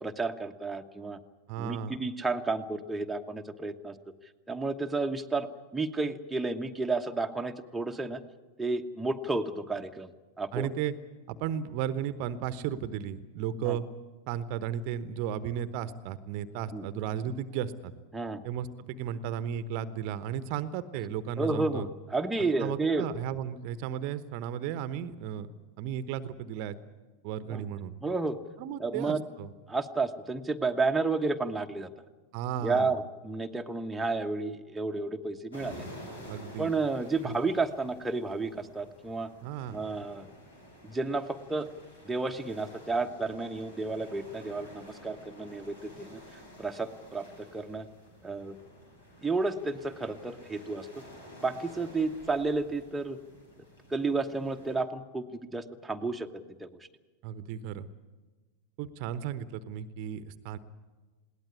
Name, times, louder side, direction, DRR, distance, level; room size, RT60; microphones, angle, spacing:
voice 1, 0.0-1.2 1.6-3.9 4.5-5.5 5.7-8.2 8.6-10.1 10.4-10.7 13.6-13.8 16.7-16.9 18.1-18.4 21.4-23.1 27.5-27.6 28.0-28.4 28.8-29.2 29.7-31.9 32.6-35.9 36.6-39.3 39.7-40.3 40.8-41.7 42.0-46.2 46.6-47.9 48.2-48.6 49.2-51.0 51.4-53.2 53.9-56.3 56.6-56.9, right 3 dB, 5° right, 3 dB, 1.2 m, -31 dB
voice 2, 1.5-2.0 10.5-10.9 11.3-13.8 14.3-17.9 18.4-21.9 22.6-25.5 25.8-26.8 27.2-27.9 28.6-29.5 32.3-32.9 36.3-36.7 37.2-37.4 39.4-39.8 57.2-57.9 58.8-60.6, right 9 dB, 45° right, 15 dB, 1.0 m, -34 dB
sound 1, 35.5-54.8, equal, 75° left, 7.3 m, -51 dB
21.0 x 18.0 x 9.7 m, 1.3 s
figure-of-eight pair, 90°, 0 cm